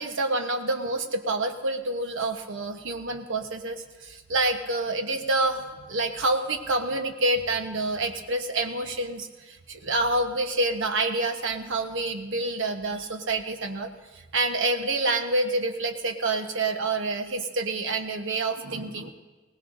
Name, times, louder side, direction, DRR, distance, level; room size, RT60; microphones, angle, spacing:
voice 1, 0.0-19.1, right 2 dB, 65° right, 5 dB, 1.1 m, -28 dB
20.5 x 18.0 x 2.6 m, 1.2 s
head